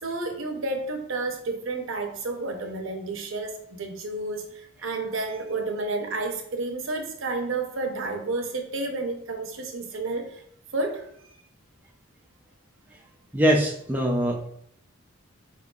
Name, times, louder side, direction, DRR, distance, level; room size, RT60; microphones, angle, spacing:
voice 1, 0.0-10.4 10.7-11.0, right 3 dB, 65° right, 4 dB, 0.8 m, -31 dB
voice 2, 13.3-14.5, equal, 10° right, -1 dB, 0.4 m, -22 dB
4.4 x 3.7 x 2.4 m, 0.72 s
head